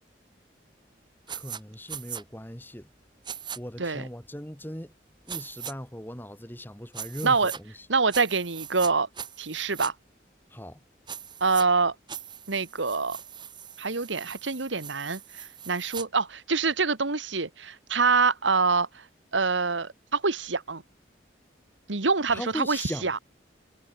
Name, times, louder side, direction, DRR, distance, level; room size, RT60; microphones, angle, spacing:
voice 1, 1.3-2.9 3.5-4.9 5.3-7.9 10.5-10.8 22.3-23.1, equal, 10° left, 3.2 m, -39 dB
sound 1, 1.3-1.6 1.9-2.2 3.2-3.6 5.3-5.7 6.9-7.6 8.1-8.9 9.2-9.9 11.1-11.7 12.1-16.0, right 8 dB, 25° right, 3.8 m, -40 dB
voice 2, 7.9-9.1 9.4-9.9 11.4-11.9 12.5-13.2 13.8-15.2 15.7-19.0 19.3-20.8 21.9-23.2, right 4 dB, 90° right, 1.7 m, -25 dB
head